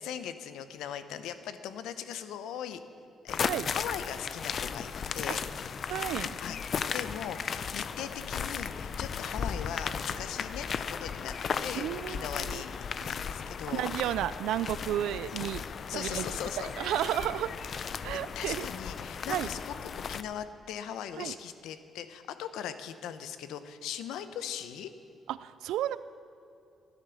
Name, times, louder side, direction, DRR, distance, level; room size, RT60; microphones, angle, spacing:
voice 1, 0.0-2.8 3.2-3.4 3.7-5.4 6.4-6.6 6.9-11.3 11.6-12.7 13.1-13.8 15.9-16.7 18.3-24.9, left 9 dB, 85° left, 11 dB, 0.8 m, -39 dB
sound 1, 3.3-20.2, left 6 dB, 50° left, 0.5 m, -36 dB
voice 2, 5.9-6.3 11.8-12.6 13.7-15.6 15.9-16.2 16.6-17.5 18.0-18.7 19.3-19.5 21.2-21.3 25.3-26.0, right 12 dB, 85° right, 16 dB, 0.3 m, -32 dB
13.0 x 10.5 x 7.1 m, 2.7 s
cardioid pair, 90°, 0 cm